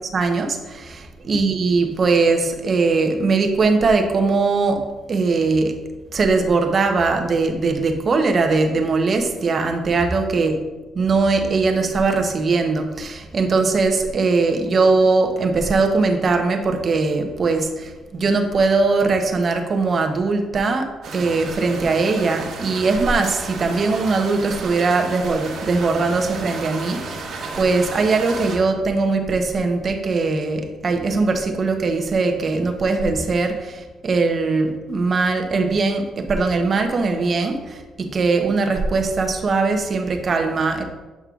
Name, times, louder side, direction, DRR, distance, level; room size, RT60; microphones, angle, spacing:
voice 1, 0.1-5.8 6.1-10.6 10.9-27.3 27.6-40.8, right 3 dB, 45° right, 5 dB, 0.8 m, -20 dB
sound 1, 21.0-28.6, right 3 dB, 70° right, 1.3 m, -33 dB
8.3 x 5.3 x 2.4 m, 1.2 s
cardioid pair, 90°, 0 cm